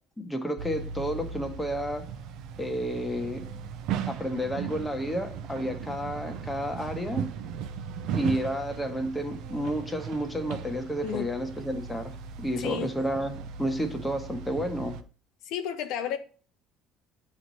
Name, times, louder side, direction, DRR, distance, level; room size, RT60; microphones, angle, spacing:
voice 1, 0.2-2.1 2.6-3.4 4.0-7.3 8.1-12.1 12.4-15.0, equal, 10° left, 1.0 m, -31 dB
sound 1, 0.6-15.0, right 7 dB, 70° right, 0.5 m, -37 dB
voice 2, 12.6-12.9 15.5-16.2, left 9 dB, 75° left, 0.6 m, -32 dB
7.9 x 3.1 x 4.0 m
cardioid pair, 105°, 0 cm